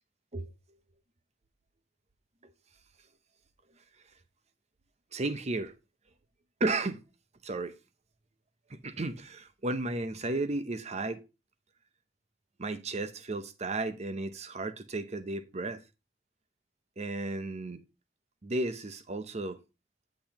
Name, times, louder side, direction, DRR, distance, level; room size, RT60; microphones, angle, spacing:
voice 1, 5.1-5.7 6.6-7.0 7.4-7.7 8.7-11.2 12.6-15.8 17.0-17.8 18.4-19.6, right 2 dB, 35° right, 0.7 m, -33 dB
8.7 x 7.7 x 3.0 m
head